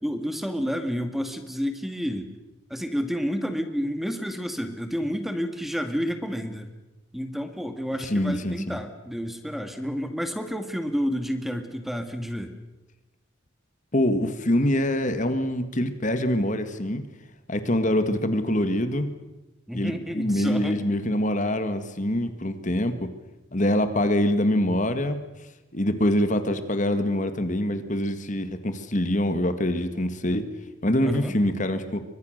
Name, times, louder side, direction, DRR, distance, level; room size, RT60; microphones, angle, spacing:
voice 1, 0.0-2.3 2.7-6.7 7.1-12.5 19.7-20.7 31.0-31.4, equal, ahead, 7 dB, 1.9 m, -30 dB
voice 2, 8.0-8.8 13.9-17.0 17.5-19.1 19.7-23.1 23.5-25.2 25.7-30.4 30.8-32.0, left 1 dB, 40° left, 9 dB, 1.8 m, -24 dB
30.0 x 24.0 x 6.6 m, 1.1 s
head